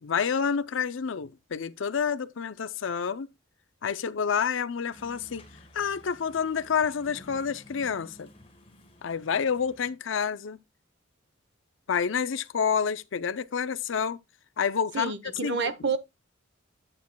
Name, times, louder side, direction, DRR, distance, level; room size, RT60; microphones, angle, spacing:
voice 1, 0.0-3.3 3.8-5.4 5.7-8.3 9.0-10.6 11.9-14.2 14.6-15.1 15.4-15.6, left 6 dB, 70° left, 0.5 m, -28 dB
sound 1, 4.9-9.9, left 1 dB, 30° left, 1.8 m, -52 dB
voice 2, 14.9-16.0, right 5 dB, 60° right, 1.0 m, -29 dB
10.5 x 8.9 x 2.3 m
head